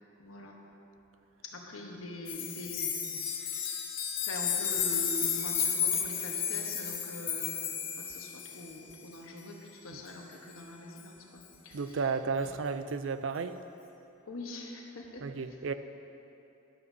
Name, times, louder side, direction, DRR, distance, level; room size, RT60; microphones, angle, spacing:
voice 1, 0.2-0.6 1.4-3.9 4.2-12.1 12.4-12.5 14.3-15.2, left 1 dB, 85° left, 0 dB, 1.2 m, -44 dB
sound 1, 2.3-8.7 11.0-11.1, left 7 dB, 45° left, 1.1 m, -32 dB
voice 2, 11.7-13.6 15.2-15.7, right 5 dB, 65° right, 10 dB, 0.4 m, -33 dB
12.5 x 11.0 x 2.7 m, 2.9 s
head